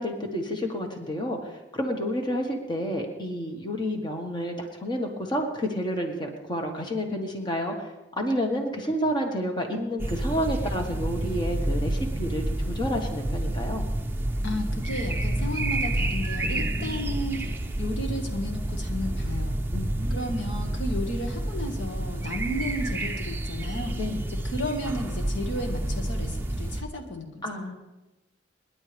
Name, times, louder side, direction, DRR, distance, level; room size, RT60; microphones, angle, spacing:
voice 1, 0.0-1.4 1.7-7.9 8.2-13.9 19.7-20.4 24.0-24.3 27.4-27.7, equal, 25° left, 2 dB, 1.5 m, -30 dB
sound 1, 10.0-26.8, right 1 dB, 10° right, 0.7 m, -29 dB
voice 2, 14.4-17.5 17.8-19.6 20.1-24.0 24.4-27.4, equal, 75° left, 3 dB, 1.8 m, -33 dB
26.5 x 11.0 x 3.5 m, 1.0 s
head